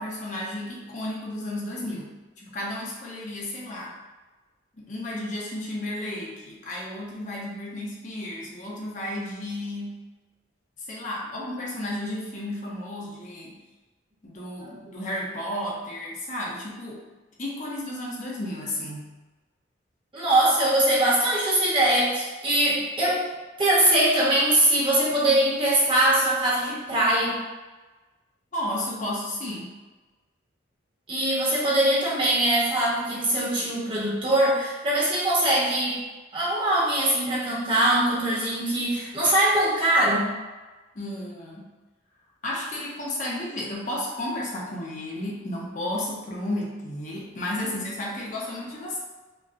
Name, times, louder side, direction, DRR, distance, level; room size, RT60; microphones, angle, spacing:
voice 1, 0.0-3.9 4.8-10.0 10.8-13.6 14.2-17.0 17.4-19.1 28.5-29.8 40.9-41.7 42.4-49.0, left 1 dB, 40° left, -4 dB, 0.6 m, -33 dB
voice 2, 20.1-23.2 23.6-27.4 31.1-36.0 36.3-40.3, right 1 dB, 25° right, -6 dB, 0.9 m, -22 dB
5.2 x 2.1 x 2.5 m, 1.2 s
head